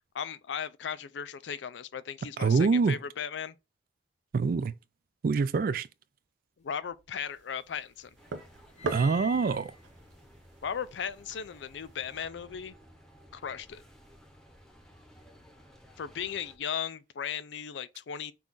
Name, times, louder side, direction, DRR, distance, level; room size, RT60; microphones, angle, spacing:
voice 1, 0.1-3.6 6.6-8.2 10.6-12.8 13.3-13.8 16.0-18.3, left 7 dB, 75° left, 0.4 m, -36 dB
voice 2, 2.4-3.0 4.3-4.7 5.2-5.9 8.8-9.7, right 4 dB, 50° right, 0.3 m, -25 dB
sound 1, 6.7-7.8 8.1-11.5, left 3 dB, 40° left, 0.8 m, -48 dB
sound 2, 7.2-12.3, right 3 dB, 90° right, 0.7 m, -43 dB
sound 3, 8.2-16.6, equal, 5° left, 0.8 m, -56 dB
5.8 x 2.5 x 3.7 m
head